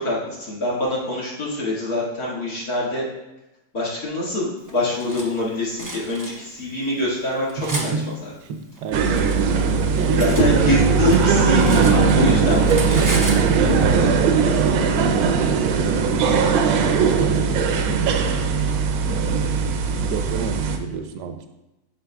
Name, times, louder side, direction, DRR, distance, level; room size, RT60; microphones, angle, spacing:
voice 1, 0.0-3.0 3.7-8.1 10.2-13.1, left 1 dB, 50° left, -6 dB, 2.4 m, -25 dB
Cutlery silverware, 4.7-5.3 5.8-6.3 7.0-7.9 8.8-10.5 10.8-12.3 12.6-13.4, right 1 dB, 25° right, 0.4 m, -32 dB
voice 2, 7.6-10.8 12.5-12.6 14.1-18.4 19.0-19.6 20.1-21.5, right 6 dB, 70° right, 7 dB, 1.2 m, -30 dB
sound 1, 8.9-20.8, right 5 dB, 90° right, 1.4 m, -19 dB
11.5 x 4.6 x 2.3 m, 0.96 s
omnidirectional pair, 2.1 m